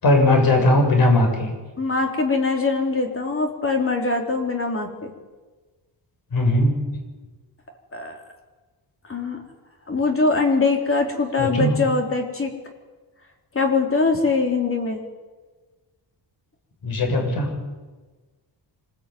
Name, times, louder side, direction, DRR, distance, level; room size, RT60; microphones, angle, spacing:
voice 1, 0.0-1.5 6.3-6.8 11.4-11.8 16.8-17.5, left 1 dB, 50° left, 3 dB, 7.5 m, -18 dB
voice 2, 1.8-5.1 7.9-8.2 9.1-9.4 9.9-12.5 13.5-15.0, left 3 dB, 30° left, 2 dB, 3.8 m, -22 dB
26.0 x 20.5 x 9.4 m, 1.3 s
wide cardioid pair, 165°, 45 cm